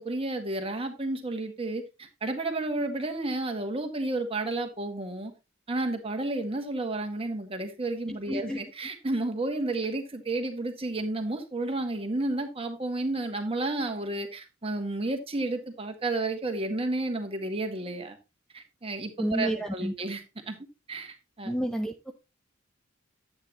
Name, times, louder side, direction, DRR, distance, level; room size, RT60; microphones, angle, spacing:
voice 1, 0.0-5.3 5.7-18.2 18.5-20.6 20.9-21.5, right 2 dB, 30° right, 1.8 m, -31 dB
voice 2, 8.1-8.6 19.2-19.9 21.4-22.1, equal, 5° left, 0.6 m, -30 dB
10.5 x 8.7 x 3.0 m
head